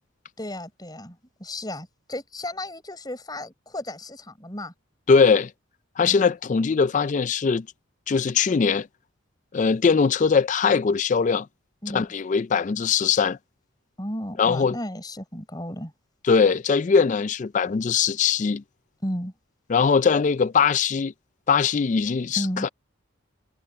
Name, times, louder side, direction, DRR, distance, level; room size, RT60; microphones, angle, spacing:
voice 1, 0.4-4.7 6.0-6.3 11.8-12.1 14.0-15.9 19.0-19.3 22.4-22.7, left 1 dB, 20° left, 5.3 m, -34 dB
voice 2, 5.1-5.5 6.0-7.7 8.1-8.9 9.5-11.5 11.9-13.4 14.4-14.8 16.3-18.6 19.7-21.1 21.5-22.7, left 5 dB, 35° left, 0.3 m, -21 dB
head